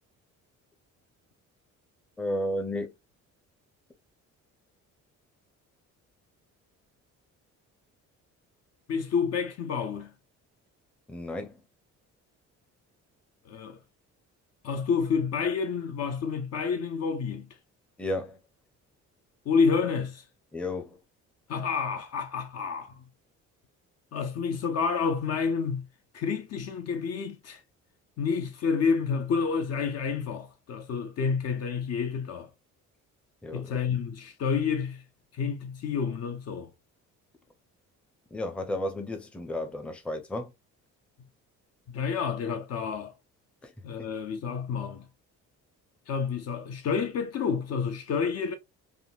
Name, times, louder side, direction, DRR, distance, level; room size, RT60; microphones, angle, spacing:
voice 1, 2.2-2.9 11.1-11.6 18.0-18.4 20.5-21.0 33.4-34.0 38.3-40.5 43.6-43.7 44.0-44.1, left 1 dB, 5° left, 0.5 m, -33 dB
voice 2, 8.9-10.1 13.5-13.8 14.6-17.5 19.5-20.2 21.5-23.0 24.1-25.9 26.1-27.6 28.2-32.5 33.5-35.0 35.3-36.7 41.9-43.1 43.8-45.0 46.1-48.6, left 5 dB, 55° left, 0.5 m, -29 dB
3.5 x 2.2 x 2.2 m
cardioid pair, 120°, 30 cm